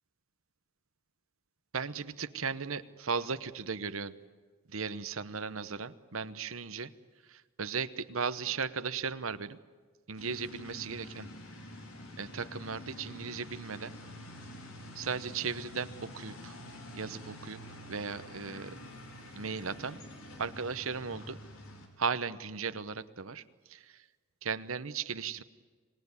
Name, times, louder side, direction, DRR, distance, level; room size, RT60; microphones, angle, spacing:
voice 1, 1.7-4.2 4.7-6.9 7.2-9.6 10.1-11.3 12.2-13.9 14.9-16.5 16.9-17.6 17.9-18.8 19.3-20.0 20.4-21.4 22.0-24.1 24.4-25.4, right 5 dB, 70° right, 12 dB, 1.0 m, -36 dB
sound 1, 10.2-21.9, left 1 dB, 75° left, 4.4 m, -47 dB
26.5 x 19.0 x 9.7 m, 1.5 s
head